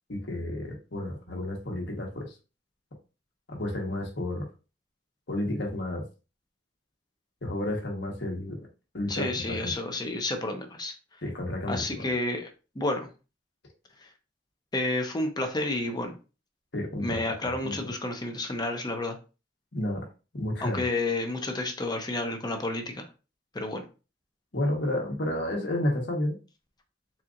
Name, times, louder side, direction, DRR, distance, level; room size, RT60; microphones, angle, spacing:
voice 1, 0.1-2.3 3.5-4.4 5.3-6.0 7.4-8.6 8.9-9.7 11.2-12.1 16.7-17.9 19.7-20.1 20.3-20.8 24.5-26.4, left 1 dB, 70° left, 1 dB, 1.3 m, -31 dB
voice 2, 9.1-11.2 11.7-12.5 12.7-13.1 14.0-14.1 14.7-16.2 17.0-19.2 20.6-23.1 23.5-23.9, left 2 dB, 25° left, 5 dB, 0.7 m, -30 dB
4.3 x 3.8 x 2.5 m, 0.32 s
head